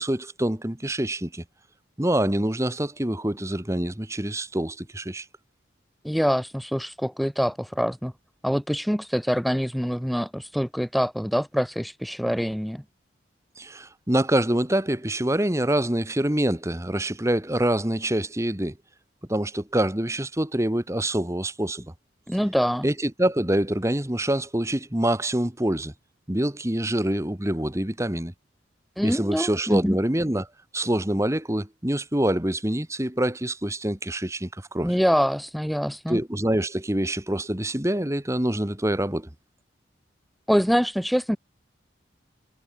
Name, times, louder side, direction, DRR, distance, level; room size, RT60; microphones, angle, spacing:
voice 1, 0.0-1.4 2.0-5.2 13.6-18.7 19.3-21.9 22.8-25.9 26.3-28.3 29.0-30.5 30.7-34.9 36.1-39.3, right 1 dB, 15° right, 1.4 m, -25 dB
voice 2, 6.0-8.1 8.4-12.8 22.3-22.9 29.0-30.0 34.8-36.2 40.5-41.4, equal, ahead, 0.6 m, -25 dB
head